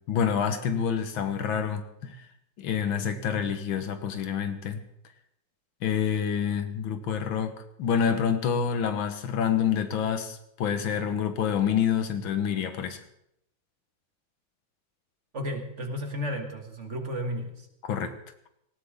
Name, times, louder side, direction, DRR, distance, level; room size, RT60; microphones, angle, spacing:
voice 1, 0.0-2.2 2.6-4.8 5.8-7.5 7.8-13.0 17.8-18.1, left 7 dB, 90° left, 9 dB, 2.0 m, -27 dB
voice 2, 15.3-17.5, equal, 40° right, 4 dB, 1.9 m, -33 dB
18.0 x 17.0 x 3.7 m, 0.77 s
omnidirectional pair, 2.1 m